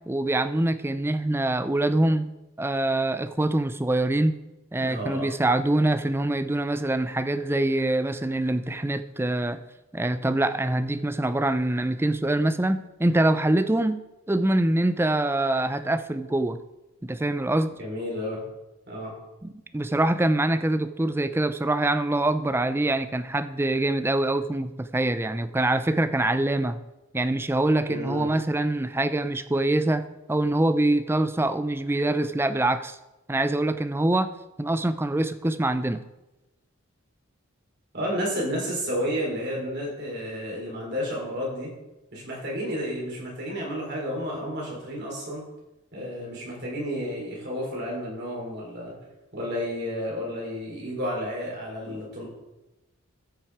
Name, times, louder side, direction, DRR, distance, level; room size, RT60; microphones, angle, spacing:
voice 1, 0.1-2.3 2.6-4.3 4.7-9.6 9.9-14.0 14.3-16.6 17.0-17.7 19.4-26.8 27.1-33.0 33.3-34.3 34.6-36.0, right 1 dB, 10° right, 11 dB, 0.4 m, -24 dB
voice 2, 4.8-5.3 17.8-18.4 18.9-19.1 27.9-28.3 37.9-41.7 42.1-45.4 45.9-48.9 49.3-52.2, equal, 50° right, -3 dB, 3.9 m, -31 dB
13.5 x 6.0 x 4.8 m, 1.0 s
head